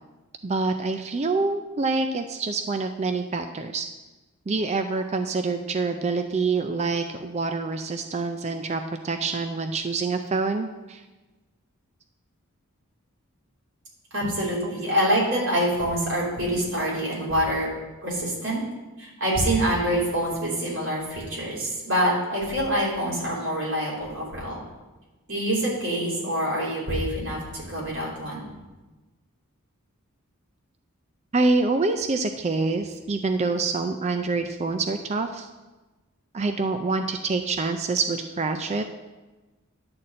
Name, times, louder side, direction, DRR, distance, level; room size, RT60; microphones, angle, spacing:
voice 1, 0.4-3.9 4.5-11.0 14.6-14.9 31.3-35.5 36.3-38.8, right 3 dB, 30° right, 7 dB, 0.4 m, -26 dB
voice 2, 14.1-17.7 18.0-18.6 19.0-24.6 25.3-28.4, equal, 60° right, -5 dB, 3.4 m, -26 dB
10.5 x 4.1 x 7.6 m, 1.2 s
head